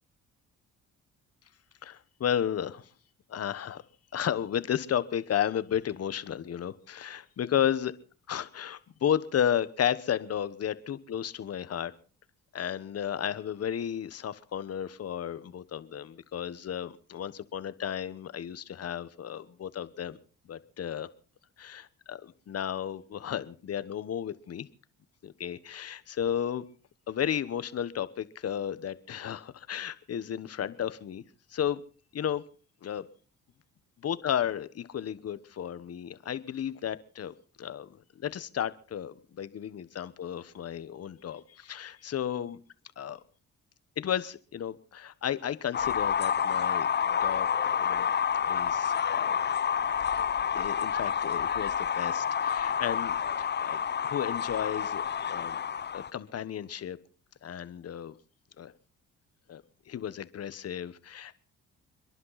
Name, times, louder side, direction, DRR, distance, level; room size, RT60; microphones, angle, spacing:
voice 1, 1.8-2.8 3.3-3.8 4.1-7.9 8.3-11.9 12.5-20.2 20.5-21.1 21.6-24.7 25.2-26.6 27.1-31.2 31.5-31.8 32.1-32.4 32.8-33.1 34.0-37.9 38.2-42.6 43.0-43.2 44.0-46.9 47.2-47.5 47.8-48.1 48.4-49.4 50.2-50.3 50.5-55.6 55.9-57.0 57.4-58.1 58.6-58.7 59.5-59.6 59.9-61.4, left 9 dB, 55° left, 14 dB, 1.3 m, -33 dB
sound 1, 45.7-56.1, left 7 dB, 35° left, 0.7 m, -29 dB
30.0 x 11.0 x 4.1 m, 0.39 s
cardioid pair, 90°, 30 cm